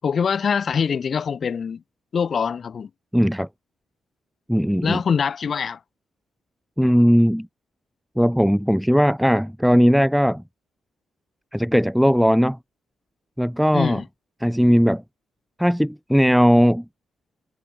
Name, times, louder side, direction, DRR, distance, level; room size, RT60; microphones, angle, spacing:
voice 1, 0.0-1.8 2.1-2.9 4.8-5.8 13.7-14.0, left 6 dB, 40° left, 8.0 m, -23 dB
voice 2, 3.1-3.5 4.5-5.0 6.8-7.5 8.2-10.4 11.5-12.6 13.4-14.0 14.4-15.0 15.6-16.8, equal, ahead, 1.3 m, -18 dB
cardioid pair, 140°, 0 cm